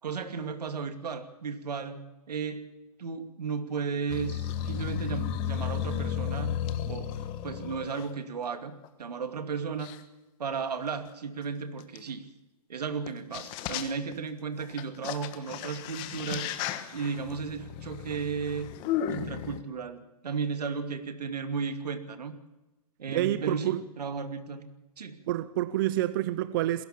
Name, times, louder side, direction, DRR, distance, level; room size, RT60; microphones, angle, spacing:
voice 1, 0.0-2.0 2.3-2.7 3.0-6.5 6.9-7.1 7.4-8.7 9.0-9.9 10.4-12.2 12.7-18.7 19.1-22.3 23.0-24.7 25.0-25.2, right 5 dB, 80° right, 2.6 m, -34 dB
sound 1, 4.1-8.1 8.8-8.9 9.8-10.0 12.0-12.1 13.1-13.2 13.3-14.1 14.6-19.6, left 9 dB, 25° left, 1.4 m, -34 dB
voice 2, 23.1-23.8 25.3-26.8, right 14 dB, 35° right, 0.7 m, -28 dB
21.0 x 18.0 x 7.3 m
hypercardioid pair, 155°, 20 cm